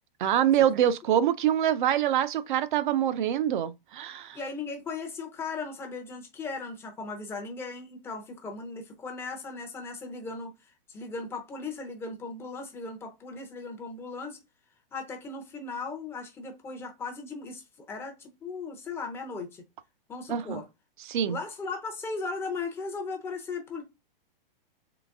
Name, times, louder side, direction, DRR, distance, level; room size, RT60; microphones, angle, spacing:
voice 1, 0.2-4.4 20.3-20.6 21.1-21.4, right 10 dB, 55° right, 0.6 m, -25 dB
voice 2, 4.3-14.4 14.9-19.6 20.1-20.7 21.3-23.8, left 4 dB, 10° left, 0.7 m, -37 dB
3.9 x 3.3 x 3.5 m
hypercardioid pair, 160°, 29 cm